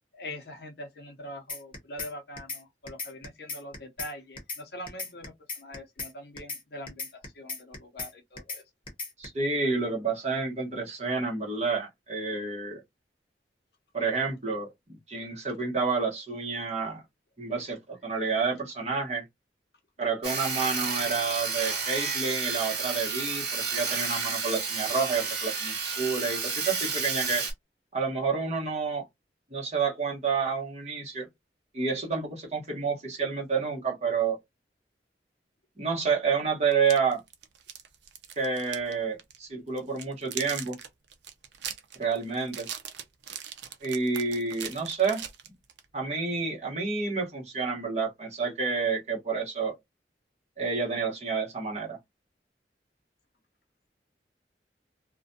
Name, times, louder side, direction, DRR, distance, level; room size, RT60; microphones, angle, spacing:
voice 1, 0.1-8.6, left 1 dB, 65° left, 0.6 m, -43 dB
sound 1, 1.5-2.1 2.4-2.6 2.9-4.1 4.4-4.6 4.9-6.1 6.4-6.6 6.9-8.1 8.4-8.6 8.9-9.3, left 4 dB, 30° left, 0.9 m, -36 dB
voice 2, 9.2-12.8 13.9-14.7 15.1-17.0 17.4-19.2 20.0-27.4 27.9-29.0 29.5-31.3 31.7-34.4 35.8-37.2 38.4-40.8 42.0-42.7 43.8-45.2 45.9-49.7 50.6-52.0, right 5 dB, 40° right, 1.0 m, -29 dB
Sawing, 20.2-27.5, right 5 dB, 65° right, 1.3 m, -31 dB
sound 2, 36.7-38.9 39.2-39.4 39.8-45.9, right 9 dB, 85° right, 0.5 m, -40 dB
2.4 x 2.2 x 2.6 m
head